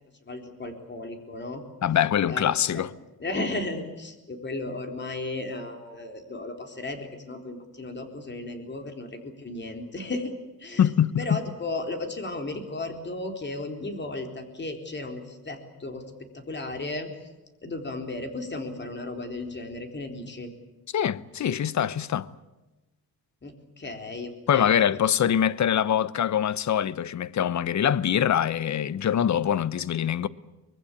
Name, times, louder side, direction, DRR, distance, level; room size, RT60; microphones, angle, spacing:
voice 1, 0.3-1.6 2.3-2.8 3.2-10.3 10.6-10.9 11.2-17.1 17.6-20.5 23.4-25.0, left 2 dB, 30° left, 4.1 m, -35 dB
voice 2, 1.8-2.9 10.8-11.4 20.9-22.3 24.5-30.3, left 9 dB, 45° left, 1.0 m, -24 dB
24.5 x 21.0 x 8.6 m
cardioid pair, 110°, 38 cm